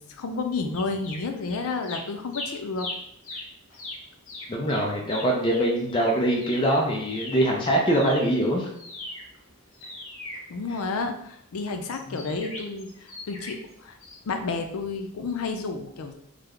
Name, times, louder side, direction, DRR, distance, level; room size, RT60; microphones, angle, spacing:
voice 1, 0.0-2.9 10.5-14.0 14.2-16.1, left 4 dB, 90° left, 6 dB, 0.4 m, -31 dB
sound 1, 0.7-1.6 1.8-7.6 7.9-11.1 11.9-13.7 14.0-14.2, left 2 dB, 70° left, 0.9 m, -40 dB
voice 2, 4.5-8.7 12.1-12.3, right 1 dB, 25° left, -1 dB, 0.4 m, -23 dB
3.3 x 2.1 x 3.6 m, 0.72 s
head